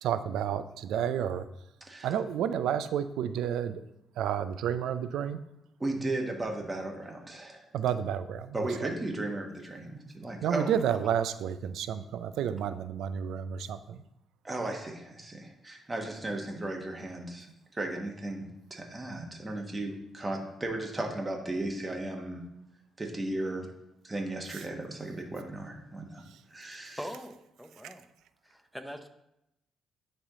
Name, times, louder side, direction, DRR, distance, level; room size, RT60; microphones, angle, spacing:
voice 1, 0.0-1.4 2.0-3.8 4.2-5.4 7.7-8.9 10.4-14.0 24.5-24.6, right 9 dB, 85° right, 12 dB, 0.4 m, -31 dB
voice 2, 5.8-7.7 8.5-10.7 14.4-22.4 23.0-23.7 24.0-26.2 26.5-27.0, right 2 dB, 20° right, 1 dB, 1.2 m, -35 dB
voice 3, 27.0-28.0 28.4-29.1, equal, ahead, 7 dB, 0.6 m, -42 dB
9.7 x 3.4 x 3.7 m, 0.85 s
cardioid pair, 90°, 0 cm